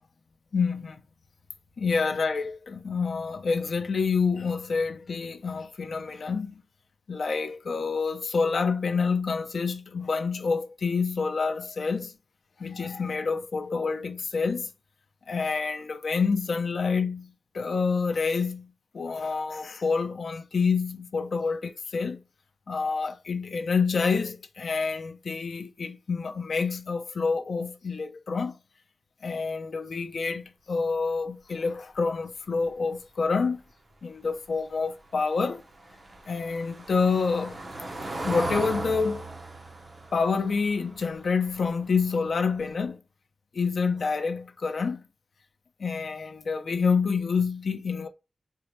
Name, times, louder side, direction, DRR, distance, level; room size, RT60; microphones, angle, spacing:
voice 1, 0.5-1.0 1.8-6.6 7.1-12.1 12.6-14.7 15.3-18.7 18.9-22.2 22.7-28.6 29.2-33.6 34.0-35.6 36.3-37.6 38.3-39.2 40.1-43.0 43.5-45.0 45.8-48.1, left 5 dB, 75° left, 0.5 m, -27 dB
Car passing by / Engine, 35.0-42.0 42.3-42.6 42.8-42.9, right 2 dB, 40° right, 0.7 m, -37 dB
4.1 x 2.3 x 3.0 m
wide cardioid pair, 125°, 0 cm